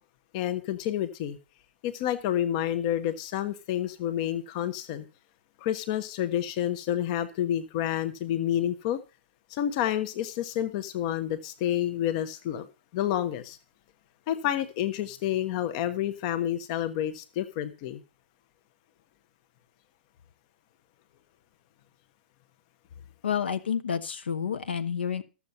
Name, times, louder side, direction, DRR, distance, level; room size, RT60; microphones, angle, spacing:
voice 1, 0.3-1.4 1.8-5.0 5.6-9.0 9.5-12.7 12.9-13.6 14.3-18.0, left 11 dB, 35° left, 0.9 m, -29 dB
voice 2, 23.2-25.2, left 7 dB, 65° left, 1.0 m, -29 dB
13.0 x 7.2 x 5.5 m
figure-of-eight pair, 115°, 6 cm